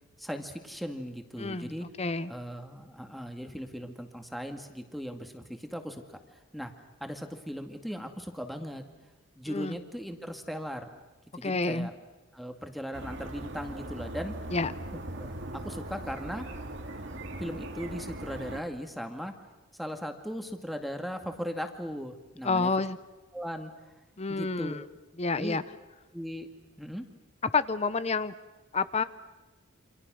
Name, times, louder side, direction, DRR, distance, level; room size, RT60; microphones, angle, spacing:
voice 1, 0.2-1.9 2.3-6.2 6.5-6.7 7.0-8.8 9.4-10.9 11.4-11.9 12.3-14.3 15.2-16.5 17.4-19.3 19.8-22.7 23.3-23.7 24.3-24.9 25.4-25.6 26.1-26.5 26.8-27.0, equal, ahead, 5 dB, 2.0 m, -38 dB
voice 2, 1.4-1.7 2.0-2.3 9.5-9.8 11.4-11.9 14.5-14.7 22.4-23.0 24.2-24.8 25.2-25.6 27.5-28.3 28.7-29.0, left 4 dB, 30° left, 14 dB, 0.8 m, -29 dB
sound 1, 12.9-18.6, right 1 dB, 60° right, 2.4 m, -40 dB
28.5 x 26.5 x 6.3 m, 1.2 s
head